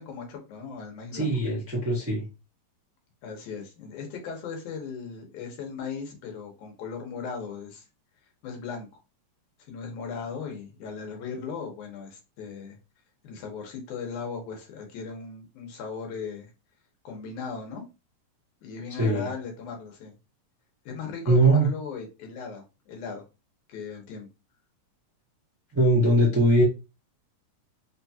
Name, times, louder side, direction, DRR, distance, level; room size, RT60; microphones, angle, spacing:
voice 1, 0.0-1.3 3.2-7.9 8.4-8.9 9.7-12.8 13.2-16.5 17.0-17.8 18.6-20.2 20.9-23.3 23.7-24.3, left 5 dB, 90° left, 2 dB, 2.5 m, -37 dB
voice 2, 1.1-2.3 19.0-19.3 21.3-21.7 25.7-26.6, right 1 dB, 15° right, -6 dB, 0.4 m, -21 dB
5.0 x 2.4 x 2.7 m, 0.28 s
omnidirectional pair, 3.3 m